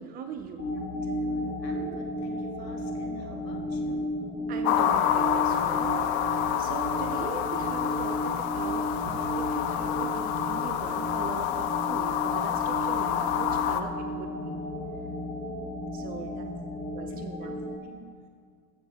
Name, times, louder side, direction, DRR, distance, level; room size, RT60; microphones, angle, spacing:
voice 1, 0.0-0.7 4.5-6.0 6.6-14.6 15.9-16.5 16.9-17.5, right 7 dB, 20° right, 7 dB, 0.4 m, -40 dB
sound 1, 0.6-17.8, left 1 dB, 25° left, 1.7 m, -33 dB
voice 2, 0.7-4.0 15.9-18.3, left 1 dB, 85° left, 1 dB, 1.7 m, -51 dB
sound 2, 4.6-13.8, left 10 dB, 45° left, 0.7 m, -28 dB
14.5 x 5.0 x 4.3 m, 2.1 s
hypercardioid pair, 95°, 48 cm